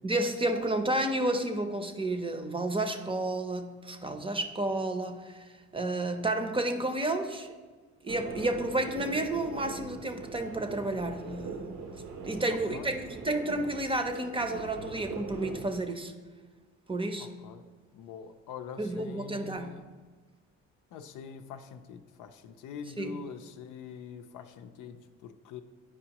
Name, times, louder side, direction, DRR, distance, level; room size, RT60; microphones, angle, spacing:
voice 1, 0.0-7.5 8.0-11.6 12.2-16.1 16.9-17.3 18.8-19.8 23.0-23.2, right 2 dB, 20° right, 7 dB, 0.6 m, -31 dB
sound 1, 8.1-15.6, right 3 dB, 80° right, 0.9 m, -41 dB
voice 2, 12.4-12.9 17.2-17.6 17.9-19.8 20.9-25.6, left 6 dB, 85° left, 7 dB, 0.5 m, -44 dB
9.9 x 4.8 x 2.9 m, 1.4 s
cardioid pair, 90°, 30 cm